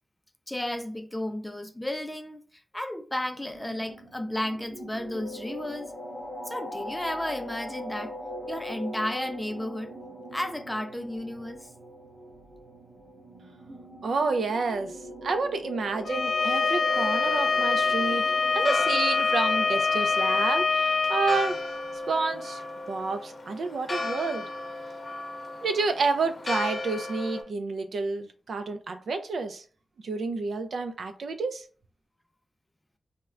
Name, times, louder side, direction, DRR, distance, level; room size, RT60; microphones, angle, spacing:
voice 1, 0.5-5.9 6.5-8.1 8.5-9.9 10.3-11.7, left 1 dB, 10° left, 0.4 m, -33 dB
sound 1, 3.2-20.6, equal, 35° right, 1.3 m, -41 dB
voice 2, 14.0-14.9 15.2-18.2 18.5-21.6 22.1-22.6 22.9-24.5 25.6-29.6 30.0-31.6, right 4 dB, 80° right, 0.3 m, -29 dB
Bowed string instrument, 16.1-21.4, left 4 dB, 90° left, 0.5 m, -25 dB
Church bell, 16.8-27.4, left 2 dB, 45° left, 0.6 m, -36 dB
4.3 x 2.1 x 2.4 m
wide cardioid pair, 115°, 0 cm